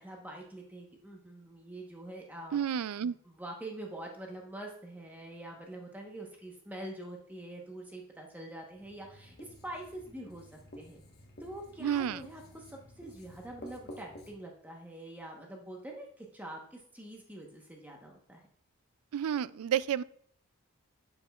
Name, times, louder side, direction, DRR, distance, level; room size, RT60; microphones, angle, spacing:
voice 1, 0.0-2.6 3.0-11.0 11.4-18.5, right 1 dB, 5° right, 0 dB, 1.0 m, -45 dB
voice 2, 2.5-3.1 11.8-12.2 19.1-20.0, right 9 dB, 80° right, 18 dB, 0.3 m, -30 dB
Writing, 8.7-14.3, equal, 45° left, 1.2 m, -51 dB
9.7 x 7.2 x 2.3 m, 0.63 s
head